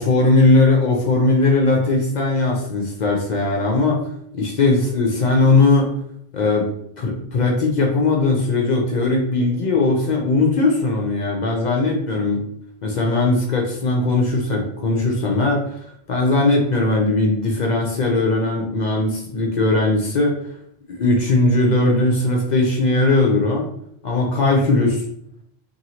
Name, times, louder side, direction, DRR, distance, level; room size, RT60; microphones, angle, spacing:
voice 1, 0.0-4.0 4.3-5.9 6.3-6.7 7.0-12.4 12.8-20.4 20.9-23.7 24.0-25.0, left 2 dB, 55° left, 0 dB, 0.6 m, -19 dB
2.9 x 2.7 x 2.7 m, 0.71 s
omnidirectional pair, 1.1 m